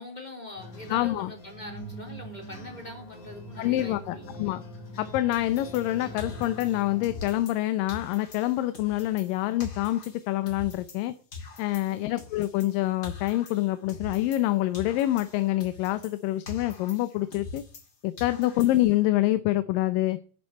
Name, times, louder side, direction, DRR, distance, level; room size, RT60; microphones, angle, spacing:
voice 1, 0.0-4.5 18.4-18.7, left 2 dB, 10° left, 3 dB, 3.1 m, -43 dB
sound 1, 0.6-7.3, equal, 60° left, 5.5 m, -43 dB
voice 2, 0.9-1.3 3.6-4.6 5.0-11.1 11.6-17.6 18.0-20.2, left 15 dB, 80° left, 13 dB, 2.3 m, -26 dB
sound 2, 5.3-7.6 7.9-11.0 11.3-14.5 14.7-17.9 18.2-19.0, left 4 dB, 35° left, 2.2 m, -43 dB
11.0 x 7.5 x 8.3 m, 0.42 s
omnidirectional pair, 4.1 m